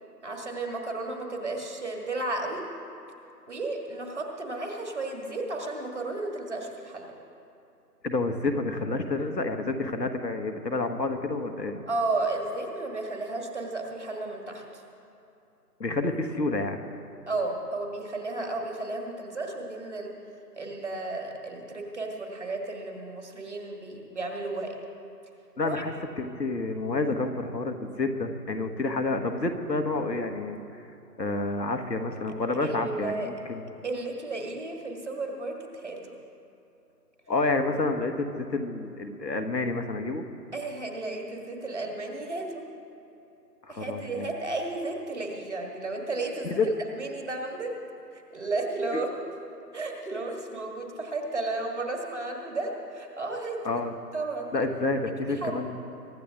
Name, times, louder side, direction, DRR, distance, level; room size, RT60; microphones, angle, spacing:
voice 1, 0.2-2.6 3.5-7.1 11.9-14.6 17.3-20.1 20.6-24.8 25.6-25.8 32.6-33.3 33.8-36.0 40.5-42.7 43.7-46.7 47.0-47.8 48.3-49.3 49.7-53.6 54.1-54.5 54.8-54.9 55.4-55.6, right 2 dB, 45° right, 1 dB, 1.9 m, -33 dB
voice 2, 8.0-11.8 15.8-16.8 25.6-30.9 31.2-33.8 37.3-40.2 43.7-44.3 46.4-46.7 53.6-53.9 54.5-55.8, left 3 dB, 80° left, 6 dB, 1.5 m, -29 dB
23.5 x 11.5 x 3.6 m, 2.8 s
figure-of-eight pair, 170°, 49 cm